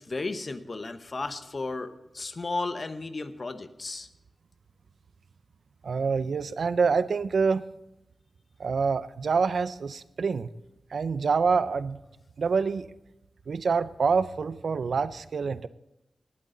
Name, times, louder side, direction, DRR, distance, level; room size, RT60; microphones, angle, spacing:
voice 1, 0.0-4.1, left 3 dB, 40° left, 10 dB, 1.0 m, -34 dB
voice 2, 5.8-7.6 8.6-10.5 10.9-12.0 12.4-12.9 13.5-15.7, right 5 dB, 65° right, 14 dB, 0.5 m, -26 dB
19.0 x 12.5 x 3.9 m, 0.93 s
wide cardioid pair, 150°, 0 cm